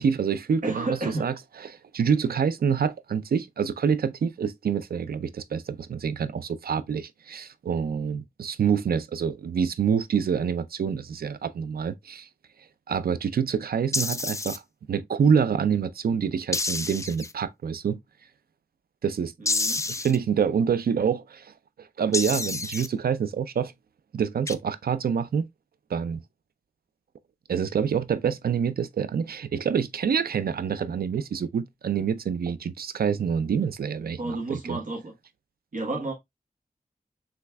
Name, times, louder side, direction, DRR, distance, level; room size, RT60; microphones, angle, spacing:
voice 1, 0.0-1.4 1.6-12.3 12.9-14.6 14.9-18.0 19.0-19.3 19.9-21.5 21.8-23.7 24.1-25.4 25.9-26.2 27.5-34.8, right 7 dB, 85° right, 0.5 m, -26 dB
voice 2, 0.6-1.2 19.4-19.8 34.2-35.1 35.7-36.1, right 2 dB, 60° right, 1.2 m, -31 dB
sound 1, 13.9-14.6 16.5-17.3 19.4-20.2 22.1-22.9 24.5-24.6, left 3 dB, 20° left, 0.4 m, -28 dB
5.8 x 3.2 x 2.2 m
wide cardioid pair, 80°, 15 cm